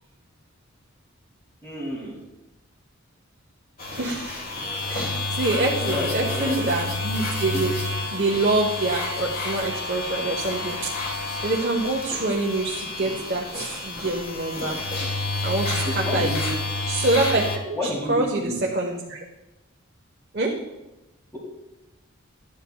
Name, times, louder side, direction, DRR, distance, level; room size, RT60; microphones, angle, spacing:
voice 1, 1.6-2.2 5.7-6.6 7.5-7.6 15.8-16.5 17.7-18.1 18.4-18.6, left 1 dB, 10° left, -5 dB, 2.6 m, -30 dB
sound 1, 3.8-17.6, left 2 dB, 45° left, 1.6 m, -29 dB
voice 2, 4.0-4.4 4.9-7.7 8.1-10.9 11.4-14.8 15.4-16.3 16.9-19.2 20.3-20.6, right 2 dB, 45° right, -2 dB, 1.1 m, -26 dB
13.5 x 10.0 x 2.3 m, 0.98 s
head